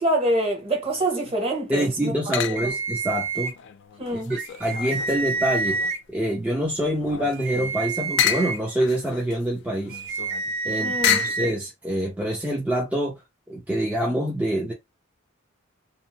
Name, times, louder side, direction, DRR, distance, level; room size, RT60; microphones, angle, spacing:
voice 1, 0.0-2.1 2.5-2.7 4.0-4.3 10.8-11.3, right 1 dB, 30° right, 0.9 m, -26 dB
sound 1, 0.8-1.4 2.3-2.9 3.4-6.1 6.5-11.5, left 10 dB, 60° left, 0.3 m, -30 dB
voice 2, 1.7-3.5 4.1-10.0 10.6-13.2 13.5-14.7, right 1 dB, 5° right, 0.5 m, -26 dB
sound 2, 2.6-3.5 4.3-6.0 7.3-8.6 9.9-11.5, right 4 dB, 50° right, 0.6 m, -28 dB
2.6 x 2.0 x 2.7 m
head